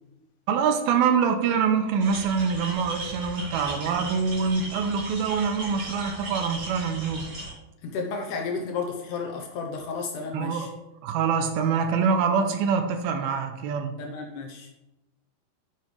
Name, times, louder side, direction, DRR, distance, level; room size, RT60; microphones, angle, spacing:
voice 1, 0.5-7.3 10.3-10.7 11.0-13.9, right 6 dB, 80° right, 7 dB, 2.4 m, -25 dB
sound 1, 2.0-7.5, right 2 dB, 45° right, 4.3 m, -37 dB
voice 2, 7.8-10.7 14.0-14.7, left 4 dB, 75° left, 2 dB, 1.9 m, -32 dB
8.8 x 8.6 x 3.2 m, 0.94 s
omnidirectional pair, 4.5 m